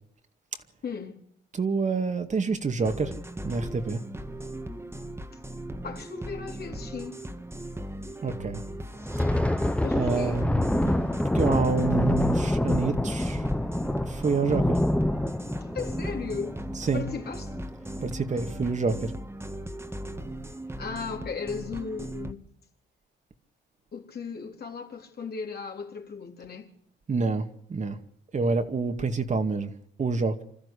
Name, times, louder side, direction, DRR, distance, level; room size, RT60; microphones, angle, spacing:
voice 1, 0.8-1.2 5.8-7.2 9.8-10.4 15.6-16.6 16.9-17.5 20.8-22.4 23.9-26.7, left 5 dB, 50° left, 3.8 m, -36 dB
voice 2, 1.5-3.2 3.4-4.0 8.2-8.6 9.9-11.1 11.3-13.5 14.0-14.8 16.8-17.0 18.0-19.1 27.1-28.0 28.3-29.7 30.0-30.4, right 4 dB, 35° right, 2.2 m, -27 dB
sound 1, 2.8-22.3, right 1 dB, 10° right, 2.0 m, -38 dB
Thunder, 8.9-18.0 18.3-18.5 18.9-19.2 19.8-20.3, left 1 dB, 5° left, 1.2 m, -27 dB
26.5 x 13.5 x 8.4 m
cardioid pair, 90°, 20 cm